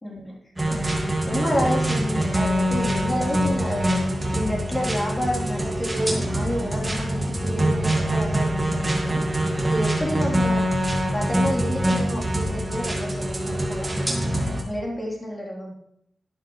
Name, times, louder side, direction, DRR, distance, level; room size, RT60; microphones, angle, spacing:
voice 1, 0.0-0.4 0.7-10.6 11.1-15.7, equal, 20° left, -3 dB, 3.5 m, -30 dB
sound 1, 0.6-14.6, right 1 dB, 10° right, 2.1 m, -24 dB
11.5 x 11.0 x 3.2 m, 0.74 s
wide cardioid pair, 120°, 0 cm